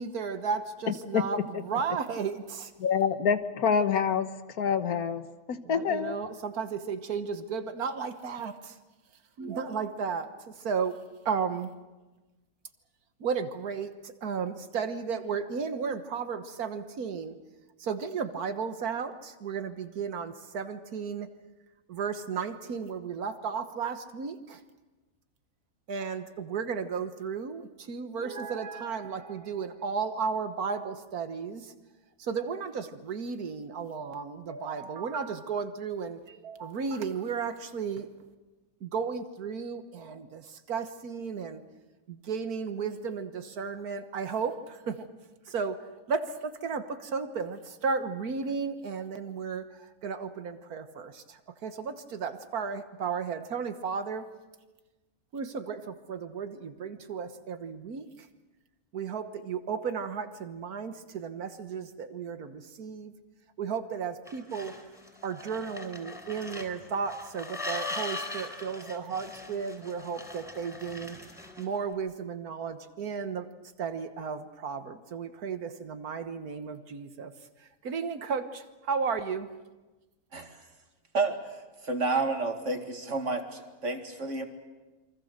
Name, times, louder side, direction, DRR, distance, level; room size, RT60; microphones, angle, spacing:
voice 1, 0.0-2.7 5.6-8.8 9.4-11.0 11.2-11.7 13.2-17.4 17.8-21.3 21.9-24.6 25.9-31.7 32.2-38.1 38.8-41.6 42.1-45.1 45.5-45.8 46.1-54.3 55.3-58.3 58.9-63.1 63.6-64.8 65.2-71.2 71.6-73.5 73.8-77.3 77.6-79.5, right 5 dB, 85° right, 9 dB, 1.8 m, -34 dB
voice 2, 2.8-4.3 4.6-6.2, left 7 dB, 80° left, 11 dB, 1.6 m, -26 dB
sound 1, 64.3-71.8, left 2 dB, ahead, 4.2 m, -40 dB
voice 3, 81.1-81.5 81.8-84.5, right 3 dB, 55° right, 5 dB, 2.4 m, -30 dB
27.5 x 24.5 x 6.7 m, 1.2 s
omnidirectional pair, 1.5 m